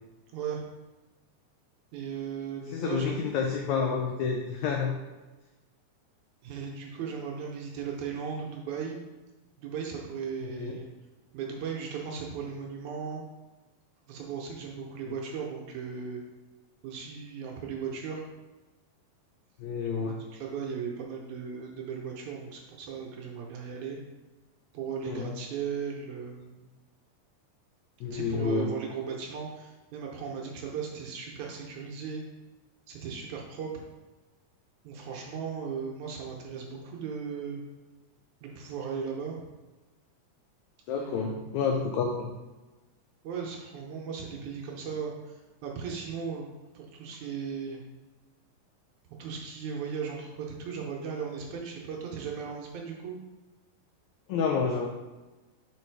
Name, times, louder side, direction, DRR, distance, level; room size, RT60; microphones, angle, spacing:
voice 1, 0.3-0.6 1.9-3.2 6.4-9.0 9.6-10.9 11.3-13.3 14.1-16.2 16.8-18.2 20.0-24.0 24.7-26.6 28.1-32.2 32.9-33.8 34.8-37.6 38.4-39.5 41.0-41.8 43.2-46.5 46.7-47.8 49.2-53.2, right 6 dB, 70° right, -1 dB, 1.9 m, -37 dB
voice 2, 2.7-5.0 10.4-10.8 15.1-15.2 19.6-20.2 25.1-25.3 28.0-28.7 40.9-42.3 54.3-54.9, left 5 dB, 90° left, 2 dB, 1.6 m, -29 dB
5.2 x 4.7 x 4.5 m, 1.2 s
omnidirectional pair, 3.9 m